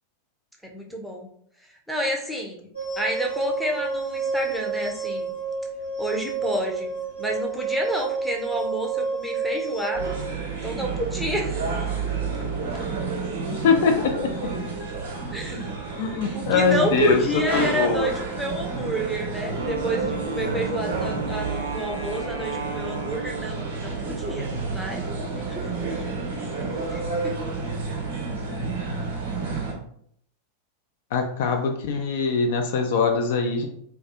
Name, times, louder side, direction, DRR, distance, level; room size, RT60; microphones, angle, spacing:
voice 1, 0.6-1.3 1.9-2.7 3.0-5.3 6.0-6.9 7.2-10.2 10.6-11.7 15.3-15.7 16.3-25.5 25.7-26.0 26.9-27.3, equal, ahead, 0 dB, 0.5 m, -29 dB
sound 1, 2.7-10.2, right 5 dB, 75° left, 0.9 m, -30 dB
sound 2, 9.9-29.7, right 4 dB, 60° right, 0.7 m, -30 dB
voice 2, 13.5-14.5 15.9-18.1 31.1-33.7, left 5 dB, 55° left, 4 dB, 0.3 m, -23 dB
Wind instrument woodwind instrument, 19.5-23.9, right 3 dB, 80° right, 0.3 m, -35 dB
2.3 x 2.2 x 2.7 m, 0.67 s
figure-of-eight pair, 90°, 0 cm